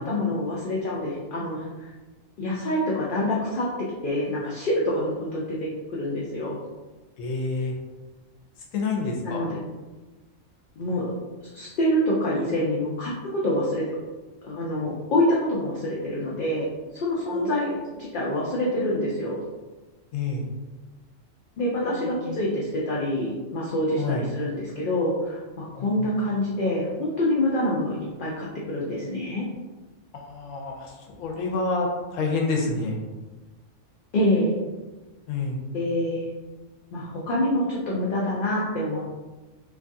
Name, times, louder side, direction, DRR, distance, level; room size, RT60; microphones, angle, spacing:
voice 1, 0.0-1.9 2.4-3.7 4.0-5.6 6.0-6.6 9.2-9.5 10.8-11.1 11.5-14.0 14.4-16.7 16.9-19.4 21.6-29.5 34.1-34.5 35.7-36.3 36.9-39.0, left 1 dB, 60° left, -5 dB, 0.6 m, -26 dB
voice 2, 7.2-7.7 8.7-9.4 17.3-17.7 20.1-20.5 21.8-22.4 24.0-24.3 25.8-26.0 30.1-33.0 35.3-35.6, left 3 dB, 85° left, 0 dB, 1.0 m, -28 dB
3.0 x 2.3 x 2.6 m, 1.2 s
omnidirectional pair, 1.3 m